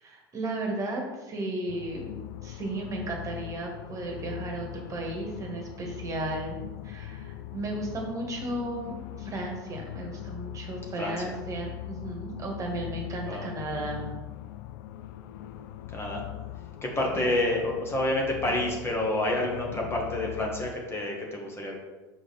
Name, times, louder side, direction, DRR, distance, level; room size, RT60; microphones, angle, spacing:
voice 1, 0.0-2.0 2.4-6.6 6.8-14.1 17.1-17.3, right 2 dB, 30° right, 0 dB, 1.7 m, -34 dB
sound 1, 1.7-20.7, left 13 dB, 55° left, 0.4 m, -41 dB
voice 2, 11.0-11.3 13.2-13.5 15.9-16.2 16.8-21.8, left 1 dB, 20° left, 0 dB, 1.4 m, -29 dB
5.9 x 4.8 x 4.1 m, 1.2 s
figure-of-eight pair, 75°, 12 cm